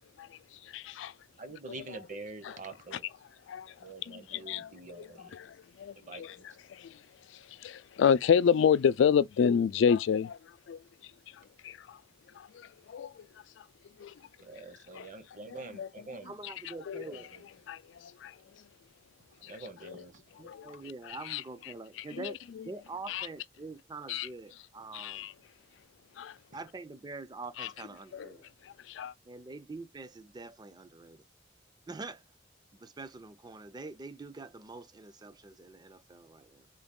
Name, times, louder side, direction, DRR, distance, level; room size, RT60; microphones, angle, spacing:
voice 1, 0.7-1.1 1.7-2.0 2.4-2.5 3.5-3.7 4.0-7.0 7.6-10.4 10.7-10.8 11.6-12.0 12.4-13.2 14.0-14.1 14.9-15.1 15.5-15.9 16.9-17.0 17.7-18.3 19.4-19.5 19.9-20.0 20.4-20.7 21.3-21.4 22.2-22.3 23.1-23.3 24.1-24.3 24.9-25.3 26.2-26.3 27.6-27.7 28.1-28.3 28.9-29.1, left 7 dB, 70° left, 0.3 m, -29 dB
voice 2, 1.4-3.0 3.8-5.3 6.0-6.4 14.4-16.3 17.0-17.4 19.5-20.2, right 3 dB, 45° right, 0.9 m, -46 dB
voice 3, 16.2-17.3 20.1-25.3 26.5-28.4 29.3-31.2 31.9-32.2 32.7-36.7, right 3 dB, 20° right, 0.4 m, -45 dB
4.0 x 2.3 x 3.6 m
head